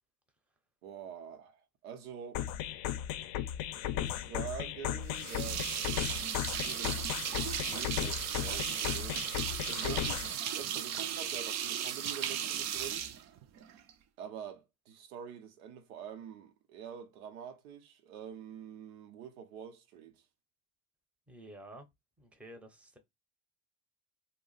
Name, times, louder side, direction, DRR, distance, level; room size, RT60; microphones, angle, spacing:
voice 1, 0.8-2.4 3.8-7.1 7.7-9.3 9.6-10.2 10.5-13.1 14.2-20.2, right 8 dB, 85° right, 0.7 m, -46 dB
sound 1, 2.3-10.3, left 11 dB, 55° left, 0.5 m, -36 dB
sound 2, 5.1-13.9, right 9 dB, 40° right, 0.4 m, -36 dB
voice 2, 21.3-21.9 22.2-23.0, right 1 dB, 5° right, 0.6 m, -50 dB
2.3 x 2.0 x 3.8 m
supercardioid pair, 85°, 42 cm